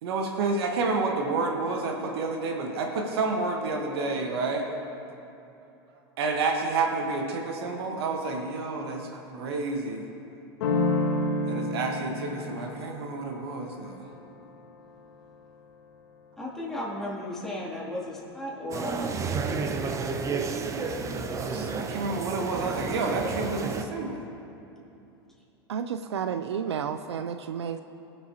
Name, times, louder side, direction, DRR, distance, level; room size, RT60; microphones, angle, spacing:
voice 1, 0.0-4.7 6.2-10.0 11.4-14.1 21.4-24.2, right 3 dB, 70° right, 2 dB, 1.2 m, -29 dB
sound 1, 10.6-16.2, left 2 dB, 75° left, 1.3 m, -31 dB
voice 2, 16.4-19.2, left 1 dB, 5° left, -6 dB, 2.6 m, -35 dB
sound 2, 18.7-23.8, right 4 dB, 25° right, 0.7 m, -31 dB
voice 3, 25.7-27.8, right 7 dB, 85° right, 9 dB, 0.4 m, -31 dB
19.5 x 6.9 x 2.8 m, 2.8 s
hypercardioid pair, 100°, 14 cm